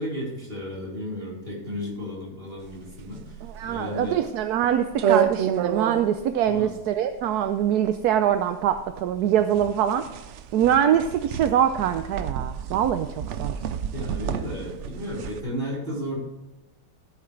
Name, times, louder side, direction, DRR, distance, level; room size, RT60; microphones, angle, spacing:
voice 1, 0.0-4.2 6.5-6.7 13.9-16.2, equal, 35° right, -5 dB, 4.5 m, -33 dB
sound 1, 2.6-15.4, right 8 dB, 60° right, 0.8 m, -30 dB
voice 2, 3.4-10.0 10.5-13.5, right 9 dB, 80° right, 8 dB, 1.1 m, -23 dB
15.5 x 8.8 x 3.2 m, 1.0 s
omnidirectional pair, 1.7 m